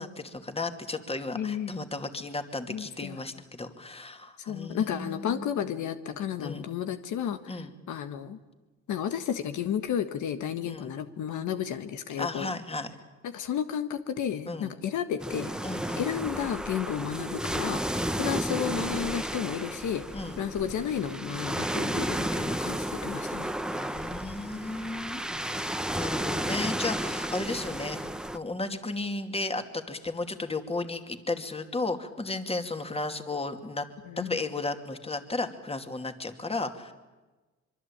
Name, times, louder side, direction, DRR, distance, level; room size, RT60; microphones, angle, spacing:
voice 1, 0.0-5.5 6.4-6.7 7.5-7.7 10.6-10.9 12.2-12.9 14.5-14.7 15.6-16.2 17.9-18.2 20.1-20.4 23.7-28.0 28.3-33.9 34.2-36.9, left 3 dB, 20° left, 7 dB, 2.6 m, -34 dB
voice 2, 1.4-1.7 2.7-3.2 4.5-8.4 8.9-12.5 13.2-15.5 16.0-23.5 34.1-34.4, left 9 dB, 75° left, 9 dB, 1.5 m, -32 dB
sound 1, 15.2-28.4, right 1 dB, ahead, 1.2 m, -32 dB
25.5 x 23.5 x 8.8 m, 1.2 s
cardioid pair, 90°, 30 cm